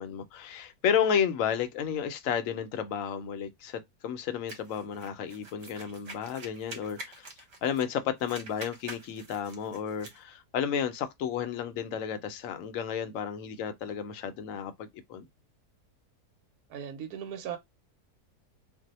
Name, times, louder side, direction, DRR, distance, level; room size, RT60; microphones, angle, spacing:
voice 1, 0.0-7.3 7.6-15.2, left 8 dB, 70° left, 0.8 m, -32 dB
sound 1, 4.5-7.9 8.2-10.2, right 2 dB, 50° right, 1.1 m, -46 dB
voice 2, 16.7-17.6, right 9 dB, 75° right, 1.1 m, -37 dB
2.6 x 2.0 x 3.9 m
omnidirectional pair, 1.7 m